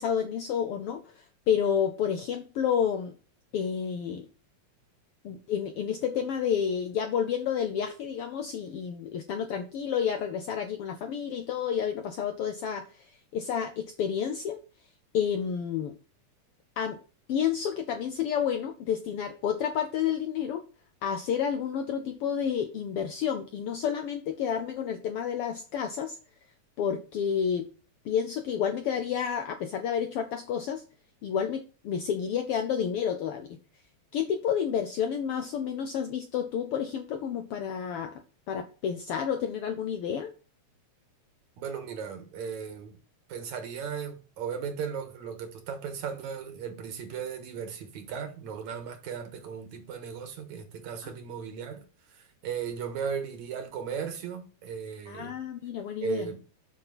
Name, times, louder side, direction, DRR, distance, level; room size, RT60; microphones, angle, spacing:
voice 1, 0.0-3.1 3.5-4.3 5.2-14.6 15.1-16.0 16.8-17.0 17.3-20.6 21.0-26.2 26.8-27.7 28.0-30.8 31.2-33.6 34.1-38.2 38.5-40.3 51.0-51.1 55.1-56.3, left 8 dB, 75° left, 1.3 m, -30 dB
voice 2, 41.6-43.0 43.3-51.8 52.1-55.3 56.0-56.4, right 7 dB, 75° right, 2.7 m, -36 dB
7.4 x 6.3 x 4.0 m
omnidirectional pair, 3.4 m